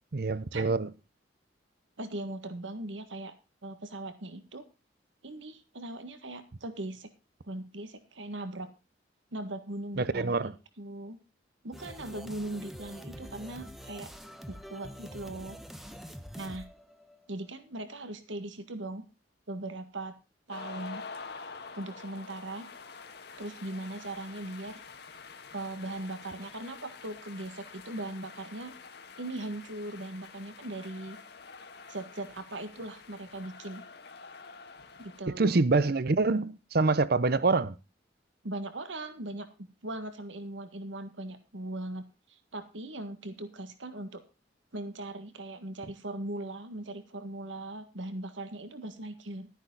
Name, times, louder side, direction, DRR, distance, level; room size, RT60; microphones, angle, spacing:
voice 1, 0.1-0.9 10.0-10.5 35.4-37.8, right 3 dB, 55° right, 0.7 m, -26 dB
voice 2, 2.0-3.3 3.6-4.7 5.2-7.1 7.4-8.7 9.3-10.5 10.8-11.2 11.6-14.1 14.5-15.6 16.4-16.7 17.3-19.0 19.5-20.2 20.5-21.0 21.8-22.7 23.4-24.8 25.5-28.7 29.2-31.2 31.9-33.8 35.0-35.6 38.4-39.5 39.8-44.2 44.7-49.5, right 1 dB, 85° right, 1.7 m, -39 dB
sound 1, 11.7-17.5, equal, ahead, 1.0 m, -46 dB
sound 2, 20.5-35.2, left 4 dB, 60° left, 1.5 m, -47 dB
12.0 x 10.0 x 3.9 m
head